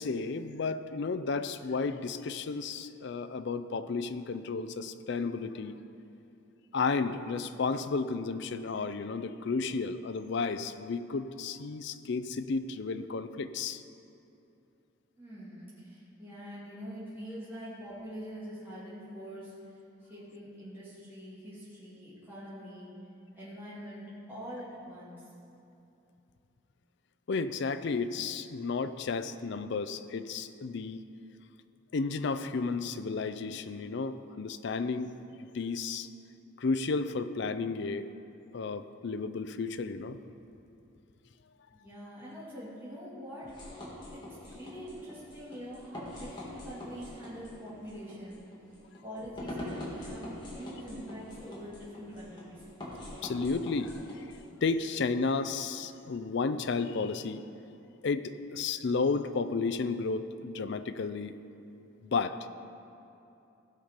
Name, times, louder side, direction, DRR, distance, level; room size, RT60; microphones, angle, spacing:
voice 1, 0.0-5.8 6.7-13.8 27.3-31.0 31.9-35.1 35.4-36.1 36.6-38.1 38.5-40.2 44.0-44.1 53.2-53.9 54.6-57.4 58.0-61.4 62.0-62.4, left 4 dB, 55° left, 11 dB, 0.4 m, -32 dB
voice 2, 15.2-19.5 20.1-23.0 23.3-25.3 41.7-43.6 44.1-48.4 49.0-52.6, equal, 10° right, -11 dB, 2.4 m, -44 dB
sound 1, 43.4-54.4, left 1 dB, 20° left, 1.7 m, -44 dB
16.0 x 5.6 x 5.2 m, 2.8 s
head